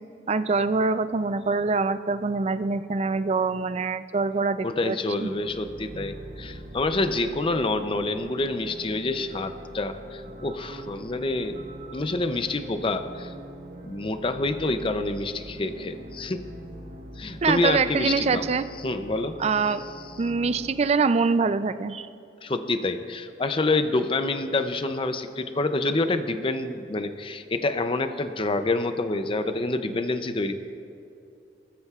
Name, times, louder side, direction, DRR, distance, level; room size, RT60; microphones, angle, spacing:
voice 1, 0.3-5.3 17.4-18.7 19.4-19.8 20.2-22.1, right 4 dB, 35° right, 12 dB, 0.4 m, -24 dB
voice 2, 4.6-11.6 11.9-13.3 13.8-16.4 17.2-18.4 18.8-19.4 22.4-30.5, left 2 dB, 30° left, 9 dB, 0.5 m, -27 dB
sound 1, 5.2-20.7, right 1 dB, 55° right, 1.3 m, -42 dB
20.0 x 13.5 x 2.4 m, 2.7 s
head